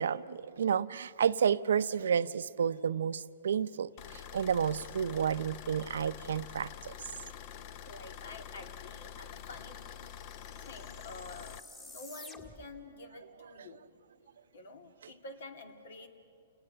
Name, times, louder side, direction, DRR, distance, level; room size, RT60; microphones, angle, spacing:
voice 1, 0.0-3.9 4.3-6.9, right 7 dB, 80° right, 14 dB, 0.6 m, -30 dB
sound 1, 4.0-11.6, left 9 dB, 40° left, 0.7 m, -47 dB
voice 2, 7.9-9.8 10.6-11.6 11.9-13.8 14.5-16.1, left 2 dB, 75° left, 5 dB, 2.6 m, -48 dB
sound 2, 8.8-12.8, left 2 dB, 15° left, 1.7 m, -54 dB
29.0 x 19.5 x 6.9 m, 2.6 s
hypercardioid pair, 150°, 0 cm